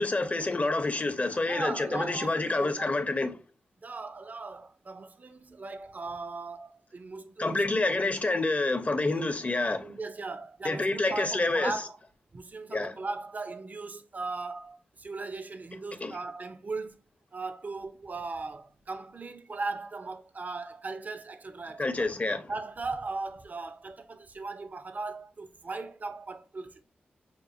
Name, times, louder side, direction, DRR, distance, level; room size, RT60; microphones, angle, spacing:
voice 1, 0.0-3.4 7.4-9.9 10.6-11.7 12.7-12.9 16.0-16.1 21.8-22.4, left 2 dB, 35° left, 0.7 m, -28 dB
voice 2, 1.5-2.9 3.8-8.0 9.8-12.0 12.3-17.0 17.3-22.1 22.5-26.8, right 3 dB, 40° right, 0.5 m, -38 dB
5.2 x 2.2 x 2.6 m
supercardioid pair, 40°, 4 cm